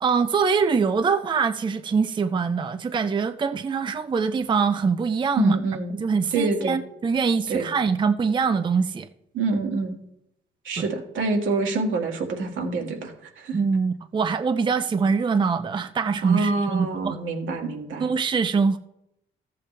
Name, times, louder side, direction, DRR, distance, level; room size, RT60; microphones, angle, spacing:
voice 1, 0.0-5.6 5.9-9.1 10.8-10.9 13.5-17.2 18.0-18.8, right 5 dB, 25° right, 10 dB, 0.5 m, -23 dB
voice 2, 5.4-6.0 6.3-6.8 7.5-7.7 9.3-10.0 10.6-13.6 16.2-18.1, right 3 dB, 75° right, 1 dB, 2.1 m, -26 dB
14.0 x 7.6 x 3.3 m, 0.80 s
cardioid pair, 90°, 20 cm